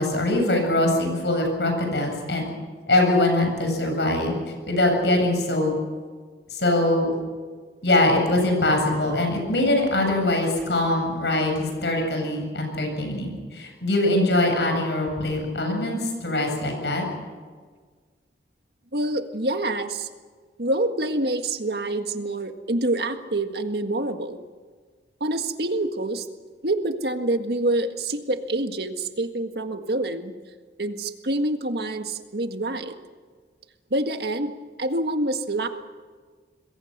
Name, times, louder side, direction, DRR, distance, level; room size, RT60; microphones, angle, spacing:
voice 1, 0.0-2.5 2.9-4.4 4.7-5.7 6.5-7.1 7.8-17.1, left 1 dB, 75° left, 3 dB, 7.8 m, -22 dB
voice 2, 18.9-20.1 20.6-24.4 25.2-26.3 26.6-30.3 30.8-32.9 33.9-34.5 34.8-35.7, right 1 dB, 65° right, 6 dB, 1.7 m, -26 dB
27.0 x 21.5 x 6.7 m, 1.5 s
head